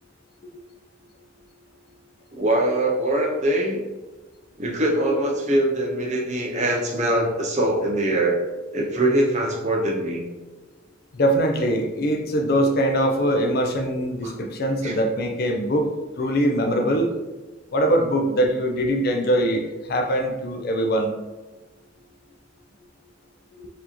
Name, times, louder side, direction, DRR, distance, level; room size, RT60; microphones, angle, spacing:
voice 1, 2.3-3.8 4.6-8.4 8.7-10.2 14.2-14.3 14.8-15.0, right 1 dB, 35° right, 0 dB, 0.5 m, -22 dB
voice 2, 11.1-15.9 16.2-17.1 17.7-21.1 23.6-23.7, equal, 45° left, 4 dB, 0.4 m, -22 dB
4.4 x 2.7 x 2.9 m, 1.2 s
head